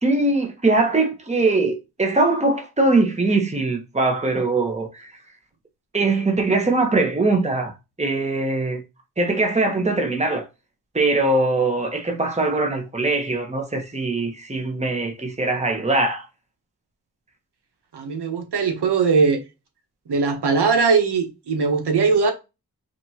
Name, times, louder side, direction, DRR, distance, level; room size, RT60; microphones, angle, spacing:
voice 1, 0.0-5.1 5.9-8.8 9.2-10.5 10.9-16.3, right 2 dB, 15° right, 1.1 m, -21 dB
voice 2, 17.9-19.4 20.1-22.3, right 5 dB, 90° right, 1.0 m, -20 dB
5.2 x 2.7 x 2.9 m
cardioid pair, 50°, 39 cm